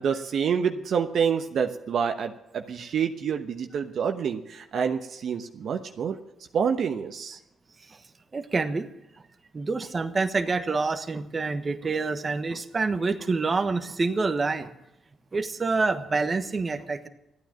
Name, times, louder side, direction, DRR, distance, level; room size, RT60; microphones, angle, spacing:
voice 1, 0.0-6.2 6.5-7.4, right 7 dB, 60° right, 6 dB, 1.0 m, -27 dB
voice 2, 8.3-8.9 9.5-14.7 15.3-17.1, right 3 dB, 30° right, 8 dB, 1.2 m, -27 dB
14.0 x 9.3 x 8.9 m, 0.85 s
cardioid pair, 90°, 0 cm